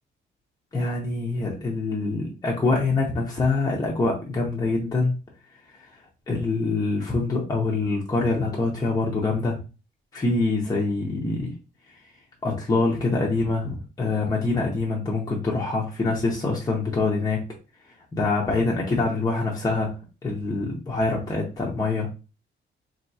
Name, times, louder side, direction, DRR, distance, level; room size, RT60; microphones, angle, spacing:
voice 1, 0.7-5.1 6.3-9.6 10.1-11.5 12.4-17.4 18.1-19.9 20.2-22.1, left 3 dB, 20° left, -3 dB, 0.7 m, -25 dB
4.3 x 2.7 x 2.7 m, 0.31 s
cardioid pair, 170°, 20 cm